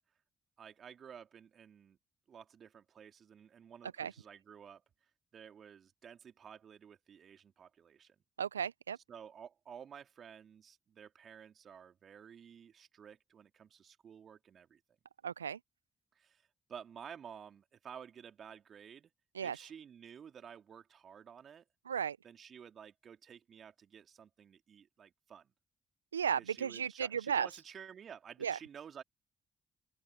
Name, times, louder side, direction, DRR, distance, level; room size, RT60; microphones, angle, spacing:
voice 1, 0.6-2.0 2.3-8.1 9.1-14.8 16.1-19.1 19.4-21.6 22.2-25.5 26.4-29.0, right 8 dB, 55° right, 3.4 m, -53 dB
voice 2, 8.4-9.0 15.2-15.6 19.3-19.6 21.9-22.2 26.1-27.5 28.4-28.6, right 7 dB, 90° right, 0.4 m, -34 dB
open air
figure-of-eight pair, 40°, 0 cm